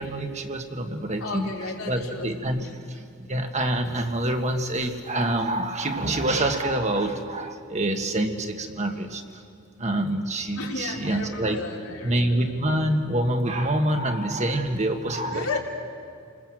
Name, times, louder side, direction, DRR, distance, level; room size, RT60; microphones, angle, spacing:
voice 1, 0.0-1.5 1.9-2.6 3.2-9.2 9.8-11.6 12.0-15.5, right 1 dB, 35° right, 5 dB, 1.6 m, -26 dB
voice 2, 1.2-2.7 10.5-12.4 15.3-15.6, left 3 dB, 85° left, -2 dB, 4.1 m, -34 dB
29.5 x 20.5 x 7.6 m, 2.4 s
head